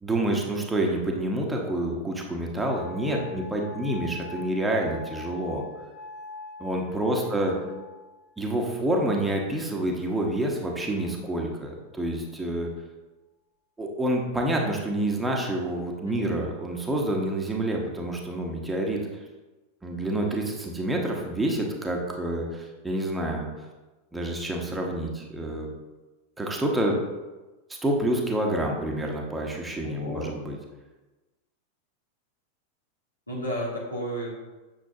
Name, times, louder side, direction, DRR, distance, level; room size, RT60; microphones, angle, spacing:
voice 1, 0.0-5.6 6.6-7.5 8.4-12.7 13.8-19.0 19.8-23.5 24.1-25.7 26.4-27.0 27.8-30.6, right 1 dB, 10° right, 0 dB, 1.1 m, -28 dB
sound 1, 2.5-9.5 10.3-10.9, left 3 dB, 50° left, 2.4 m, -44 dB
voice 2, 7.0-7.8 16.1-16.4 29.8-30.4 33.3-34.3, equal, 80° left, -5 dB, 2.3 m, -34 dB
8.5 x 6.3 x 2.8 m, 1.2 s
figure-of-eight pair, 90°, 0 cm